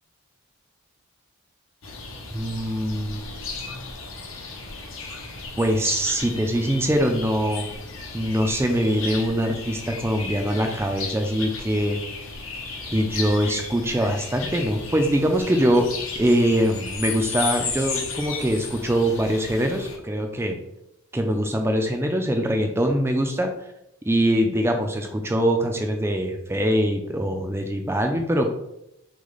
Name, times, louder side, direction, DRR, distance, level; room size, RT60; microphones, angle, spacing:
Dawn Chorus, 1.8-20.0, left 4 dB, 70° left, 0.9 m, -34 dB
voice 1, 2.3-3.2 5.6-7.7 8.1-12.0 12.9-15.9 16.2-20.6 21.1-23.5 24.1-28.5, equal, 10° right, 4 dB, 0.4 m, -23 dB
6.1 x 2.2 x 3.9 m, 0.82 s
head